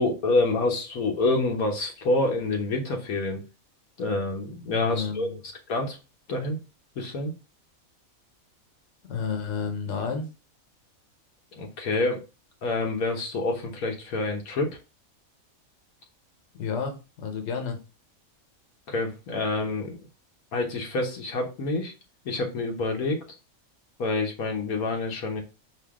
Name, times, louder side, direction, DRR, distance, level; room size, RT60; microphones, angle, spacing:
voice 1, 0.0-3.4 4.0-5.4 5.7-6.0 6.3-6.6 7.0-7.3 11.5-12.2 12.6-14.8 18.9-20.0 20.5-21.9 22.2-23.2 24.0-25.4, left 2 dB, 80° left, 2 dB, 1.4 m, -27 dB
voice 2, 4.7-5.4 9.1-10.3 16.5-17.8, left 5 dB, 55° left, 5 dB, 1.1 m, -31 dB
5.0 x 2.6 x 3.6 m, 0.30 s
omnidirectional pair, 1.5 m